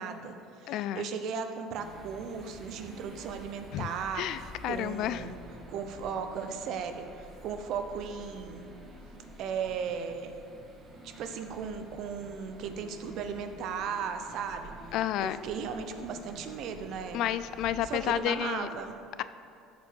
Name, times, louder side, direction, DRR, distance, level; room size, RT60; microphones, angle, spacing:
voice 1, 0.0-5.3 5.7-8.7 9.4-10.3 11.0-14.9 15.2-17.2 17.8-19.0, right 6 dB, 60° right, 7 dB, 0.8 m, -36 dB
voice 2, 0.7-1.1 3.7-3.9 4.1-5.3 14.9-15.4 17.1-18.7, left 11 dB, 60° left, 14 dB, 0.3 m, -31 dB
sound 1, 1.7-18.2, right 1 dB, 25° right, 1.6 m, -49 dB
13.5 x 5.1 x 4.6 m, 2.6 s
cardioid pair, 115°, 0 cm